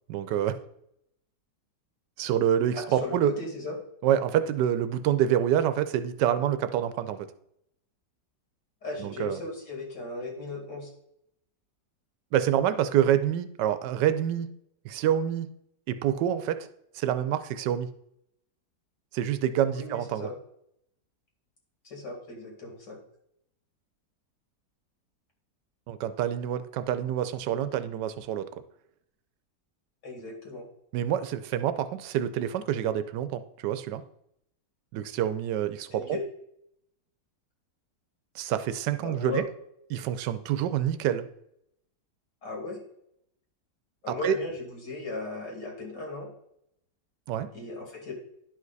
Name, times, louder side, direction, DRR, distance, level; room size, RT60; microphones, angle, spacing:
voice 1, 0.1-0.6 2.2-3.3 4.0-7.3 9.0-9.4 12.3-14.5 14.8-15.5 15.9-16.6 16.9-17.9 19.1-20.3 25.9-28.5 30.9-34.0 34.9-36.2 38.3-39.4 39.9-41.3 44.1-44.4 47.3-47.5, right 10 dB, 75° right, 12 dB, 1.2 m, -27 dB
voice 2, 2.7-3.8 8.8-10.9 19.7-20.3 21.8-23.0 30.0-30.6 35.9-36.2 39.0-39.4 42.4-42.8 44.0-46.3 47.5-48.1, left 2 dB, 70° left, 0 dB, 2.6 m, -37 dB
11.0 x 5.1 x 4.0 m, 0.75 s
omnidirectional pair, 1.9 m